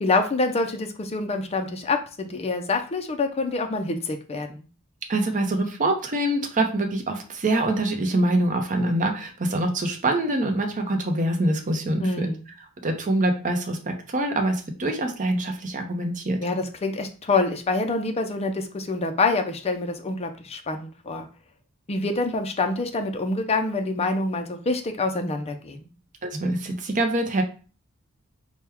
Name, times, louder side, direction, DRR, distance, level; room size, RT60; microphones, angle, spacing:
voice 1, 0.0-4.7 12.0-12.4 16.4-21.3 21.9-25.9, left 3 dB, 30° left, 6 dB, 0.5 m, -26 dB
voice 2, 5.1-12.3 12.8-16.4 26.2-27.4, right 1 dB, 35° right, 4 dB, 0.7 m, -25 dB
4.5 x 2.2 x 3.4 m, 0.36 s
head